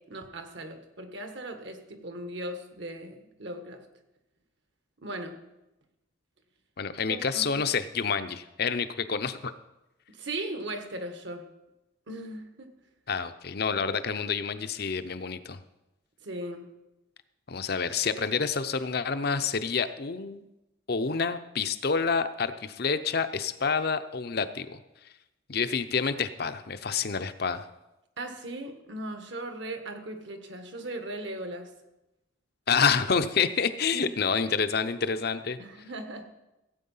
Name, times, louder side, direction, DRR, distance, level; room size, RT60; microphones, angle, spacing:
voice 1, 0.1-3.8 5.0-5.4 7.1-7.6 10.1-11.5 12.1-12.7 16.2-16.7 28.2-31.7 33.9-34.1 35.6-36.3, right 1 dB, 60° right, 6 dB, 1.5 m, -38 dB
voice 2, 6.8-9.5 13.1-15.6 17.5-20.4 20.9-24.8 25.5-27.7 32.7-35.6, left 5 dB, 50° left, 11 dB, 0.7 m, -28 dB
16.0 x 8.3 x 5.6 m, 0.96 s
head